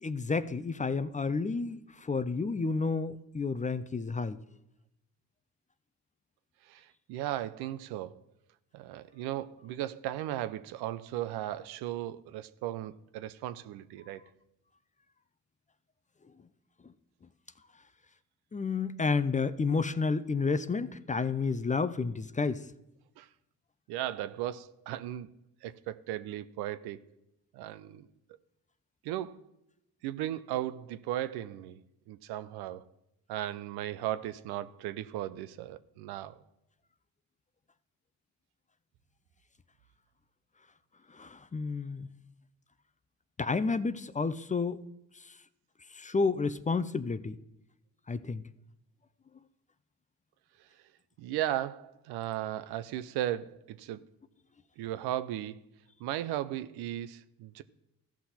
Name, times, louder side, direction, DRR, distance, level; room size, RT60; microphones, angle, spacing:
voice 1, 0.0-4.4 18.5-22.6 41.1-42.1 43.4-44.8 45.9-47.4 48.1-48.4, left 4 dB, 20° left, 0.5 m, -30 dB
voice 2, 6.6-8.2 8.7-14.2 23.2-23.3 23.9-25.3 25.6-27.0 27.5-28.1 29.0-29.4 30.0-31.8 32.1-32.9 33.3-36.4 50.6-50.7 51.2-54.0 54.8-55.6 56.0-57.6, right 13 dB, 85° right, 0.6 m, -36 dB
14.5 x 5.9 x 4.2 m
supercardioid pair, 60°, 38 cm